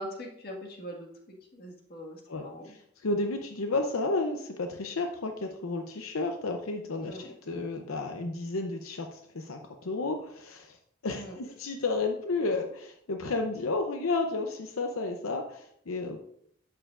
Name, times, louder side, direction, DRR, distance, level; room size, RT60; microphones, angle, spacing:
voice 1, 0.0-2.7 7.0-7.3 11.1-11.4, equal, 45° left, 1 dB, 1.6 m, -42 dB
voice 2, 2.3-10.8 11.0-16.2, left 3 dB, 80° left, 4 dB, 0.7 m, -32 dB
11.0 x 7.7 x 2.5 m, 0.71 s
head